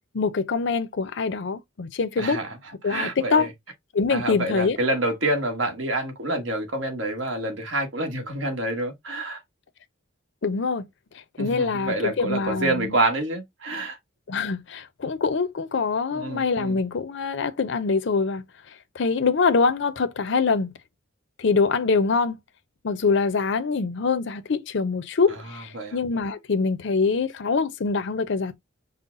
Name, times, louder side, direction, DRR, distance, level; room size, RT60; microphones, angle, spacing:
voice 1, 0.1-2.4 2.8-3.5 3.9-4.8 10.4-10.8 11.4-12.9 14.3-18.4 18.9-20.7 21.4-22.4 22.8-28.6, left 4 dB, 60° left, 0.5 m, -24 dB
voice 2, 2.2-2.6 2.8-3.5 4.1-9.4 11.4-14.0 16.1-16.8 25.3-26.0, right 2 dB, 70° right, 1.3 m, -27 dB
5.5 x 2.1 x 3.7 m
head